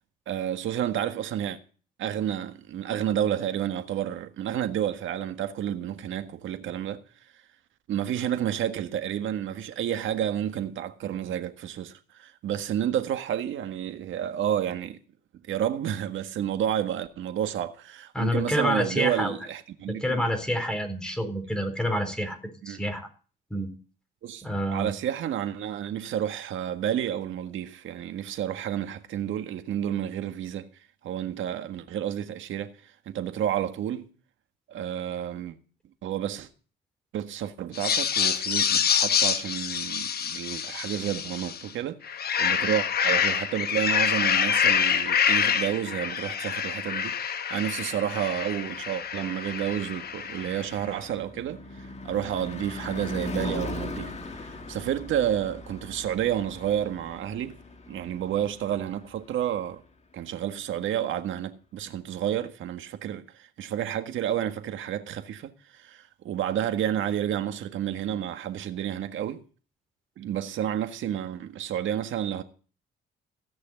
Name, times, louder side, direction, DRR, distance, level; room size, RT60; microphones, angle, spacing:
voice 1, 0.3-1.6 2.0-7.0 7.9-15.0 15.5-20.3 22.6-22.8 24.2-24.4 24.7-30.7 31.0-34.1 34.7-35.6 36.0-36.5 37.1-42.0 42.4-57.6 57.9-59.8 60.1-69.4 70.2-72.4, right 10 dB, 75° right, 1.6 m, -30 dB
voice 2, 18.1-19.3 19.9-22.4 22.6-23.1 23.5-23.7 24.4-24.9, equal, 5° left, 4.2 m, -28 dB
sound 1, 37.7-41.6 42.0-50.7, left 8 dB, 50° left, 1.1 m, -26 dB
Car passing by / Truck / Engine, 49.3-59.6, left 2 dB, 35° left, 2.1 m, -39 dB
16.5 x 6.5 x 9.2 m
cardioid pair, 90°, 20 cm